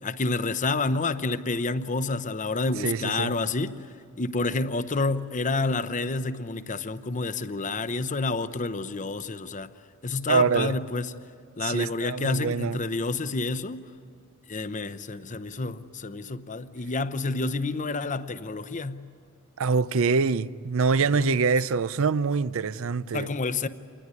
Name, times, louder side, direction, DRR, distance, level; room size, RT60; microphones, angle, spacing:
voice 1, 0.0-3.8 4.2-9.7 10.0-11.1 11.6-13.8 14.5-19.0 21.1-21.4 23.1-23.7, left 3 dB, 35° left, 0.8 m, -29 dB
voice 2, 2.8-3.3 10.3-10.8 11.6-12.8 19.6-23.3, right 5 dB, 65° right, 0.5 m, -25 dB
27.5 x 20.0 x 9.7 m
head